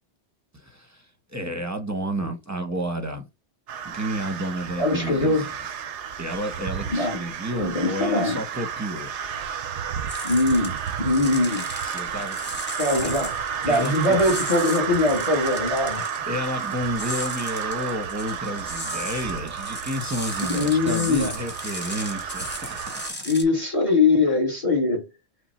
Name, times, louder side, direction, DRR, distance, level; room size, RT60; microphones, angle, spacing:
voice 1, 0.6-1.0 1.3-3.3 3.8-5.5 6.2-9.1 11.8-12.6 13.0-13.1 13.7-14.2 16.3-23.0, equal, 15° right, 0.8 m, -31 dB
sound 1, 3.7-23.1, right 7 dB, 85° right, 1.0 m, -32 dB
voice 2, 4.8-5.5 6.9-7.2 7.5-8.4 10.2-11.7 12.8-13.4 13.6-16.1 20.5-21.3 23.2-25.1, left 2 dB, 30° left, 1.2 m, -22 dB
sound 2, 10.1-23.4, left 1 dB, 10° left, 1.0 m, -37 dB
5.6 x 2.1 x 4.2 m
omnidirectional pair, 1.2 m